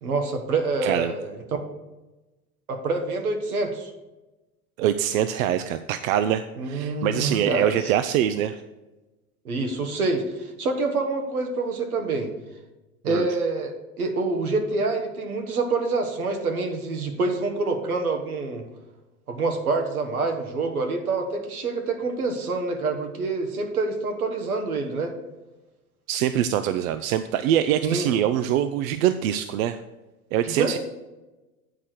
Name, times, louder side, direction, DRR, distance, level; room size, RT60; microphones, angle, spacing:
voice 1, 0.0-1.6 2.7-3.9 6.6-7.6 9.4-12.3 13.0-18.6 19.3-25.1 27.8-28.1 30.4-30.8, right 3 dB, 90° right, 4 dB, 1.3 m, -26 dB
voice 2, 0.8-1.1 4.8-8.6 13.0-13.3 26.1-29.8 30.3-30.8, right 10 dB, 70° right, 11 dB, 0.5 m, -24 dB
8.8 x 4.3 x 6.2 m, 1.1 s
hypercardioid pair, 90°, 42 cm